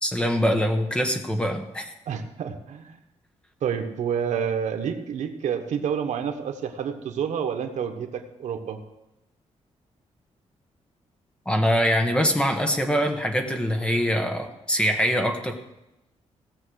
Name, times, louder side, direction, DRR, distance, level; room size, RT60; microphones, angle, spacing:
voice 1, 0.0-1.9 11.4-15.6, equal, 10° left, 5 dB, 1.2 m, -23 dB
voice 2, 2.1-3.0 3.6-8.8, right 7 dB, 90° right, 6 dB, 1.2 m, -29 dB
17.0 x 6.7 x 6.4 m, 0.94 s
wide cardioid pair, 175°, 12 cm